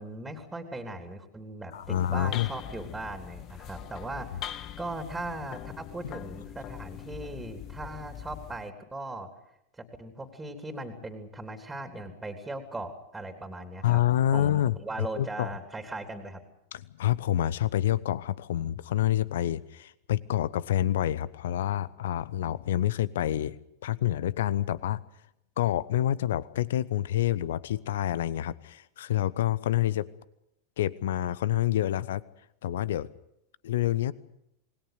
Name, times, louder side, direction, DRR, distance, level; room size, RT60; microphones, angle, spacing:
voice 1, 0.0-9.3 9.8-14.0 14.3-16.4, right 2 dB, 10° right, 5 dB, 3.2 m, -39 dB
voice 2, 1.7-2.5 13.8-15.5 16.7-25.0 25.6-30.1 30.8-32.2 32.6-33.1 33.6-34.1, left 12 dB, 60° left, 20 dB, 0.9 m, -28 dB
sound 1, 1.7-8.7, left 11 dB, 35° left, 1.0 m, -42 dB
27.5 x 20.5 x 6.7 m, 0.78 s
figure-of-eight pair, 90°, 0 cm